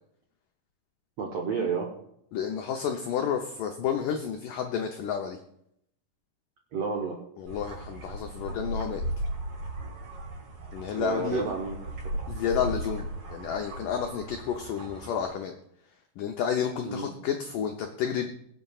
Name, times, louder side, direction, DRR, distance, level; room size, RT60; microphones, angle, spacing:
voice 1, 1.2-1.9 6.7-7.2 11.0-11.9 16.8-17.1, right 5 dB, 90° right, 0 dB, 1.4 m, -30 dB
voice 2, 2.3-5.4 7.4-9.0 10.7-11.4 12.3-15.5 16.2-18.3, left 8 dB, 85° left, 4 dB, 1.8 m, -30 dB
sound 1, 7.5-15.3, right 1 dB, 50° right, 4.7 m, -36 dB
22.5 x 7.8 x 2.4 m, 0.75 s
omnidirectional pair, 4.7 m